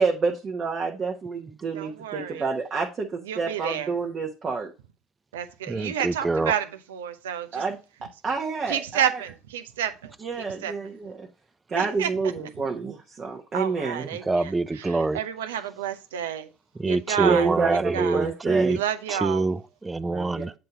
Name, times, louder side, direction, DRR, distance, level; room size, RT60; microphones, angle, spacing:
voice 1, 0.0-4.7 7.5-7.8 8.2-9.2 10.2-11.3 11.7-14.1 17.2-18.8 20.1-20.4, right 4 dB, 40° right, 1.0 m, -28 dB
voice 2, 1.7-2.5 3.3-3.9 5.3-7.6 8.7-10.1 10.6-10.7 11.7-12.1 13.5-14.5 15.1-16.5 16.9-17.5 17.9-18.3 18.7-19.5, right 10 dB, 85° right, 0.6 m, -30 dB
voice 3, 5.7-6.5 14.1-15.2 16.8-18.8 19.1-20.5, right 3 dB, 20° right, 0.4 m, -25 dB
7.6 x 2.9 x 4.6 m
hypercardioid pair, 65°, 0 cm